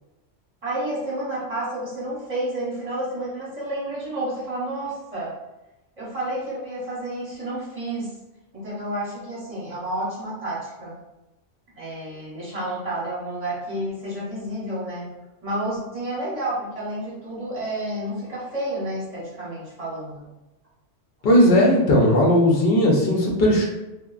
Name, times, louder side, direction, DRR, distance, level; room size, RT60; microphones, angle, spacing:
voice 1, 0.6-5.3 6.0-8.2 8.5-11.0 11.8-15.1 15.4-20.2, right 1 dB, 30° right, -8 dB, 1.0 m, -30 dB
voice 2, 21.2-23.7, left 1 dB, 60° left, -1 dB, 0.8 m, -17 dB
2.8 x 2.2 x 2.3 m, 1.0 s
omnidirectional pair, 1.2 m